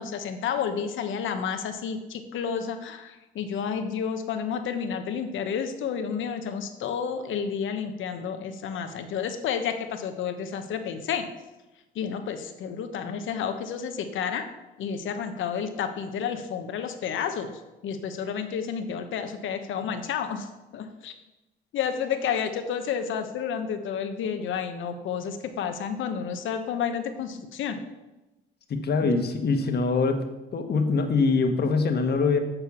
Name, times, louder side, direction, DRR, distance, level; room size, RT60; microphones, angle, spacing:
voice 1, 0.0-11.3 11.9-14.5 14.8-20.5 20.7-21.1 21.7-27.8 29.0-29.1, left 7 dB, 80° left, 7 dB, 1.1 m, -31 dB
voice 2, 28.7-30.2 30.5-32.4, left 4 dB, 55° left, 5 dB, 1.3 m, -23 dB
7.1 x 6.6 x 7.0 m, 1.0 s
cardioid pair, 90°, 20 cm